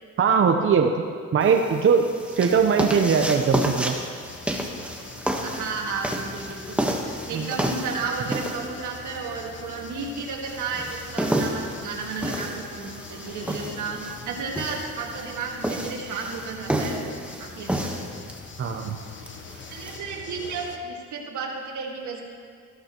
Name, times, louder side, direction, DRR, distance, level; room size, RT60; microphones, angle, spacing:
voice 1, 0.2-0.9 1.3-4.0 7.3-7.5 18.6-19.0, right 6 dB, 45° right, 4 dB, 0.7 m, -20 dB
sound 1, 1.4-20.0, right 1 dB, 5° right, 1.1 m, -31 dB
sound 2, 4.2-20.8, left 5 dB, 40° left, 1.0 m, -43 dB
voice 2, 5.4-18.2 19.7-22.2, right 4 dB, 75° right, 0 dB, 1.9 m, -33 dB
14.5 x 12.0 x 3.0 m, 2.2 s
cardioid pair, 90°, 30 cm